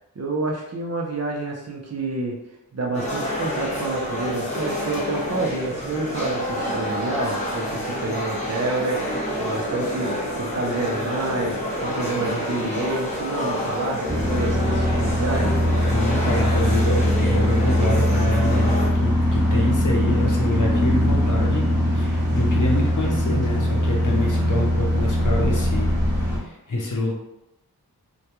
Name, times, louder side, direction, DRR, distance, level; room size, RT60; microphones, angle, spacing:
voice 1, 0.2-2.4 2.7-15.6, right 2 dB, 45° right, -1 dB, 0.5 m, -28 dB
sound 1, 2.9-18.9, equal, 20° left, 1.0 m, -28 dB
sound 2, 14.1-26.4, equal, 10° right, 1.0 m, -21 dB
voice 2, 15.9-25.9 26.3-27.1, left 1 dB, 55° left, -2 dB, 0.7 m, -26 dB
2.2 x 2.2 x 2.9 m, 0.89 s
wide cardioid pair, 65°, 36 cm